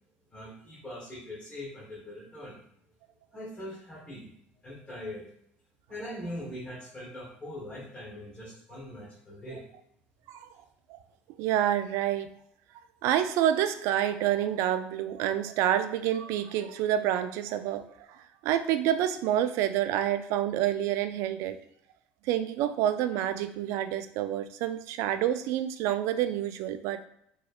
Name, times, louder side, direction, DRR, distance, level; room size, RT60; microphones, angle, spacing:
voice 1, 0.3-2.6 3.3-4.3 4.6-5.3 5.9-9.6, left 1 dB, 20° left, -5 dB, 1.1 m, -41 dB
voice 2, 11.4-12.3 13.0-21.6 22.2-27.0, right 11 dB, 70° right, 11 dB, 0.3 m, -28 dB
4.2 x 3.1 x 2.4 m, 0.71 s
supercardioid pair, 85°, 5 cm